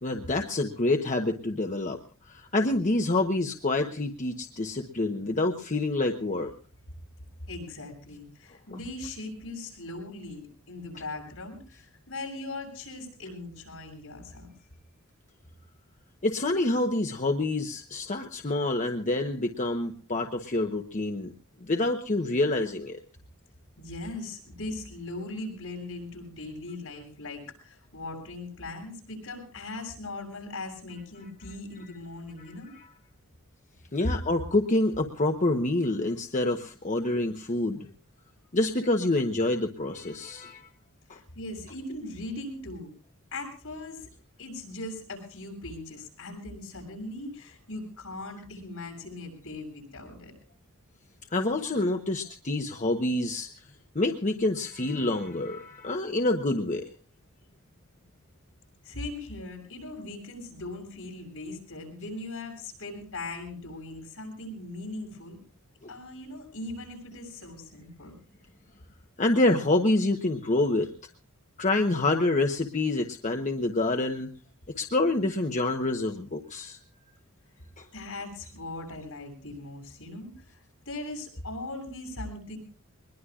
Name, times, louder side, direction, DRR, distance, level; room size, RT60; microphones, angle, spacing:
voice 1, 0.0-6.5 16.2-21.3 21.6-23.0 32.4-32.9 33.9-37.9 38.5-40.7 41.1-41.2 51.3-53.7 53.9-56.9 65.8-65.9 69.2-70.9 71.6-74.3 74.8-76.8 77.8-77.9, left 2 dB, 35° left, 4 dB, 1.0 m, -27 dB
voice 2, 7.5-14.5 23.8-32.8 41.1-42.9 43.3-44.1 44.4-50.3 58.8-65.4 65.9-68.1 77.9-82.6, left 2 dB, 70° left, 2 dB, 7.4 m, -39 dB
22.5 x 21.0 x 2.4 m, 0.38 s
head